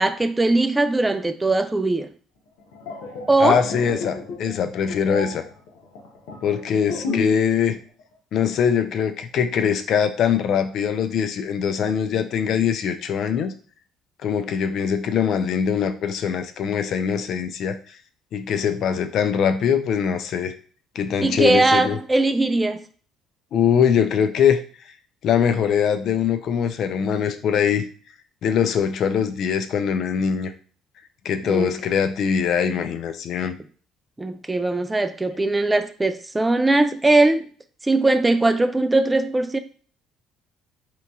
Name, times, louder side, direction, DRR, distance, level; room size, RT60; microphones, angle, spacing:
voice 1, 0.0-2.1 3.3-3.6 21.2-22.8 31.4-31.7 34.2-37.5 37.8-39.6, right 2 dB, 15° right, 0.3 m, -20 dB
sound 1, 2.6-7.5 7.7-8.0, left 3 dB, 85° left, 0.7 m, -32 dB
voice 2, 3.4-5.4 6.4-7.8 8.3-13.5 14.2-17.8 18.3-20.5 21.0-22.0 23.5-24.6 25.2-27.9 28.4-30.5 31.2-33.6, left 7 dB, 60° left, 0.3 m, -22 dB
2.9 x 2.6 x 2.3 m
supercardioid pair, 70°, 0 cm